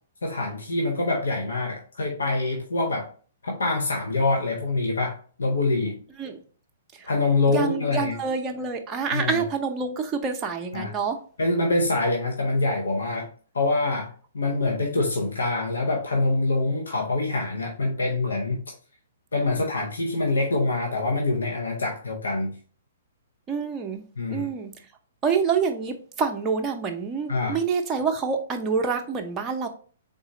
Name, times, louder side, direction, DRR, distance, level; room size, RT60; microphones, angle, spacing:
voice 1, 0.2-3.1 3.4-5.9 7.1-8.2 9.1-9.4 10.7-10.9 11.4-13.3 13.5-18.6 19.3-22.5 24.2-24.5 27.3-27.6, left 2 dB, 70° left, 0.9 m, -25 dB
voice 2, 7.5-11.2 23.5-24.0 24.3-24.8 25.2-29.7, right 5 dB, 20° right, 0.7 m, -27 dB
4.0 x 3.9 x 2.9 m
figure-of-eight pair, 115°, 0 cm